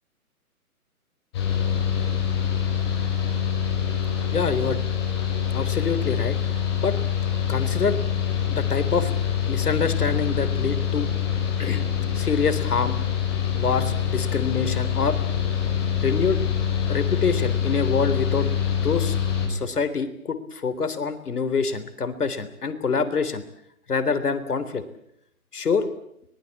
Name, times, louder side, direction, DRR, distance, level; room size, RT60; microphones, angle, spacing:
Mechanical fan, 1.3-19.5, left 8 dB, 15° left, 4.0 m, -25 dB
voice 1, 4.3-4.8 5.5-6.4 6.8-6.9 7.5-8.0 8.5-9.1 9.5-11.1 11.6-11.8 12.1-13.0 13.5-15.2 16.0-16.4 16.9-18.5 18.8-19.2 19.5-23.4 23.9-24.8 25.5-25.9, left 5 dB, 85° left, 10 dB, 3.6 m, -25 dB
23.5 x 19.5 x 8.4 m, 0.75 s
hypercardioid pair, 180°, 44 cm